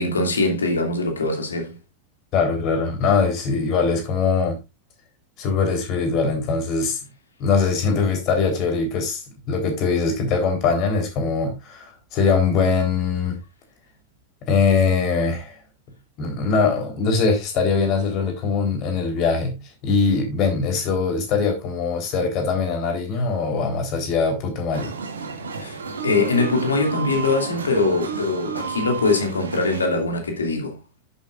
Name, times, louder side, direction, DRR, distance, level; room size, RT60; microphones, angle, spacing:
voice 1, 0.0-1.8 25.6-25.8 26.0-30.8, left 3 dB, 70° left, 2.5 m, -22 dB
voice 2, 2.3-4.6 5.4-7.0 7.4-13.4 14.5-15.6 16.2-24.9, left 5 dB, 40° left, 3.7 m, -22 dB
sound 1, 24.7-29.9, right 5 dB, 70° right, 1.5 m, -31 dB
10.0 x 8.2 x 2.5 m
figure-of-eight pair, 90°, 0 cm